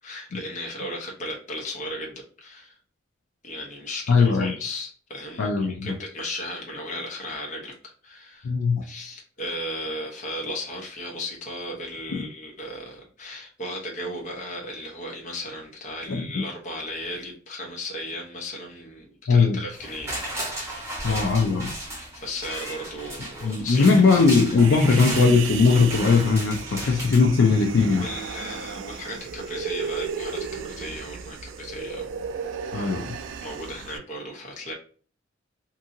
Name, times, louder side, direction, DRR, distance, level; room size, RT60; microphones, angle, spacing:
voice 1, 0.0-2.8 3.4-8.5 8.8-20.1 21.0-21.3 22.1-24.2 26.8-27.0 27.9-32.2 33.4-34.7, left 1 dB, 40° left, -1 dB, 0.8 m, -36 dB
voice 2, 4.1-4.5 5.4-5.9 8.4-8.8 12.1-12.2 16.1-16.3 19.3-19.6 21.0-21.7 23.4-28.1 32.7-33.1, left 4 dB, 70° left, 2 dB, 0.4 m, -19 dB
sound 1, 19.7-27.9 28.3-28.4, right 1 dB, 15° right, 1.0 m, -35 dB
Human voice, 24.6-34.0, right 6 dB, 70° right, 0.3 m, -35 dB
2.7 x 2.6 x 2.6 m, 0.43 s
head